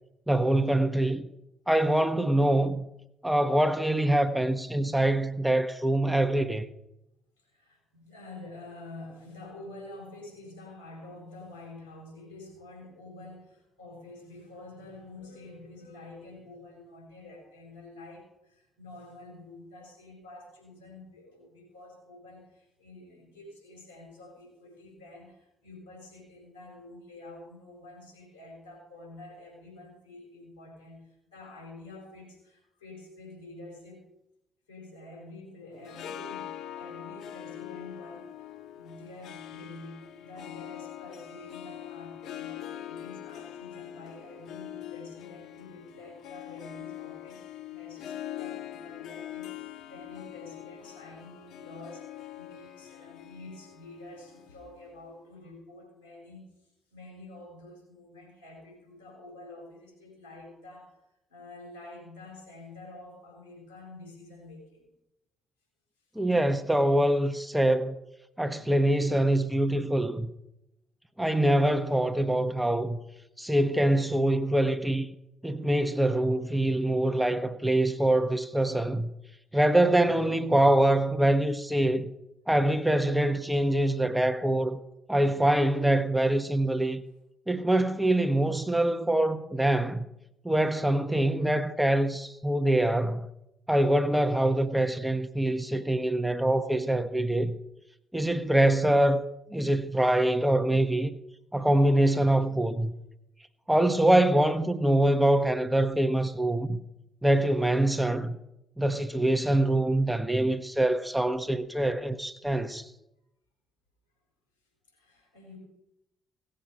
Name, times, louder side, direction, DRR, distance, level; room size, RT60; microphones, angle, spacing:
voice 1, 0.3-1.3 1.7-2.8 3.2-6.7 66.2-68.0 68.4-70.3 71.2-73.0 73.4-75.1 75.4-79.1 79.5-82.1 82.5-84.8 85.1-87.0 87.5-90.0 90.4-93.3 93.7-97.5 98.1-99.2 99.5-101.1 101.5-102.9 103.7-106.8 107.2-108.4 108.8-112.9, right 1 dB, 5° right, 0.9 m, -24 dB
voice 2, 7.4-34.0 34.7-61.0 61.3-64.9 95.4-95.9 109.5-109.9 114.9-115.6, left 2 dB, 85° left, 4.6 m, -48 dB
Harp, 35.7-55.1, left 12 dB, 60° left, 0.8 m, -43 dB
17.0 x 7.7 x 5.7 m
figure-of-eight pair, 45°, 0 cm